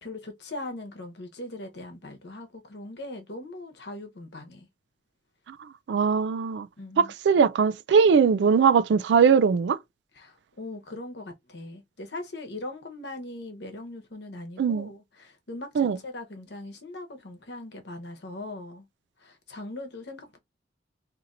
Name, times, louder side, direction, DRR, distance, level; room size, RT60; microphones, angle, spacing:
voice 1, 0.0-4.7 6.8-7.1 10.1-18.9 19.2-20.4, left 2 dB, 75° left, 1.0 m, -40 dB
voice 2, 5.9-6.7 7.0-9.8 14.6-14.9 15.8-16.0, right 6 dB, 80° right, 0.3 m, -20 dB
2.8 x 2.5 x 4.0 m
head